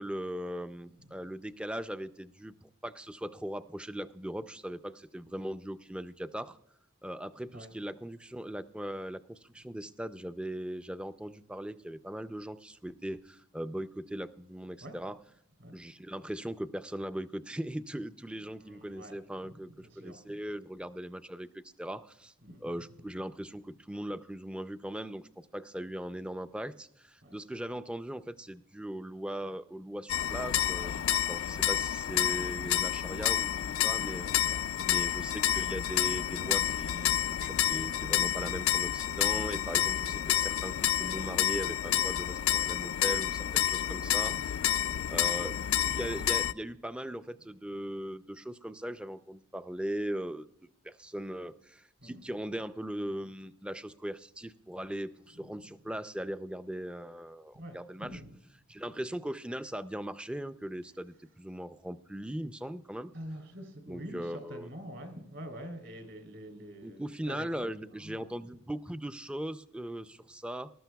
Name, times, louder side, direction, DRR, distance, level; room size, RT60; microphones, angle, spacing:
voice 1, 0.0-6.6 7.0-15.2 15.7-22.3 22.6-31.0 31.3-34.3 34.9-44.7 45.1-50.5 50.8-58.2 58.7-63.1 63.9-64.7 66.8-70.7, right 1 dB, 5° right, 12 dB, 0.3 m, -39 dB
voice 2, 18.4-20.4 22.4-23.1 27.2-27.4 30.3-30.5 34.0-35.1 37.5-38.2 44.6-45.2 52.0-52.2 55.3-55.7 57.5-58.4 63.1-68.5 70.0-70.1, equal, 65° right, 5 dB, 3.2 m, -47 dB
sound 1, 30.1-46.5, left 11 dB, 85° left, 0.3 m, -29 dB
19.5 x 13.0 x 2.3 m, 0.78 s
head